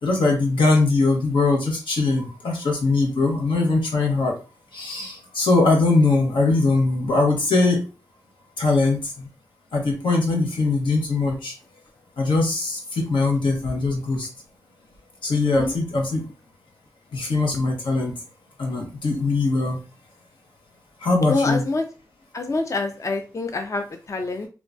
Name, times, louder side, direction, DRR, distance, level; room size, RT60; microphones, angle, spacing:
voice 1, 0.0-4.3 4.7-7.8 8.6-9.3 9.7-11.5 12.2-14.3 15.2-16.3 17.1-18.1 18.6-19.8 21.0-21.6, left 3 dB, 85° left, 0 dB, 1.0 m, -21 dB
voice 2, 21.3-21.8 22.3-24.5, left 3 dB, 40° left, 6 dB, 0.4 m, -26 dB
3.5 x 2.3 x 2.5 m, 0.33 s
cardioid pair, 55°, 8 cm